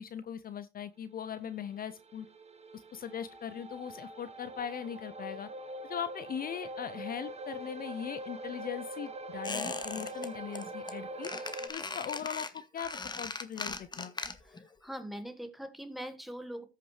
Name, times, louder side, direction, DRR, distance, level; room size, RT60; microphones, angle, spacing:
voice 1, 0.0-2.3 2.7-5.5 5.9-11.3 11.7-12.5 12.7-14.1, left 8 dB, 45° left, 0.5 m, -40 dB
sound 1, 1.3-11.7, right 1 dB, 30° right, 1.1 m, -43 dB
Squeak, 9.4-10.3 10.5-10.9 11.2-14.6 14.9-15.0, left 3 dB, 20° left, 1.0 m, -39 dB
voice 2, 14.4-16.6, equal, ahead, 1.5 m, -42 dB
13.5 x 5.7 x 3.2 m
cardioid pair, 90°, 20 cm